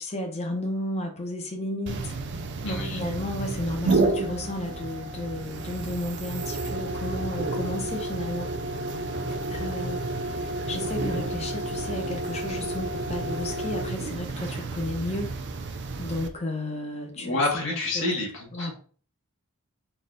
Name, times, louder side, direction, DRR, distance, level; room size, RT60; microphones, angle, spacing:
voice 1, 0.0-2.1 2.6-8.5 9.5-15.3 16.0-18.0 18.5-18.7, left 1 dB, 30° left, 2 dB, 0.8 m, -33 dB
sound 1, 1.9-16.3, right 2 dB, 50° right, 0.4 m, -30 dB
voice 2, 2.6-3.0 17.1-18.7, left 2 dB, 55° left, -2 dB, 1.4 m, -28 dB
3.9 x 2.4 x 3.8 m, 0.41 s
head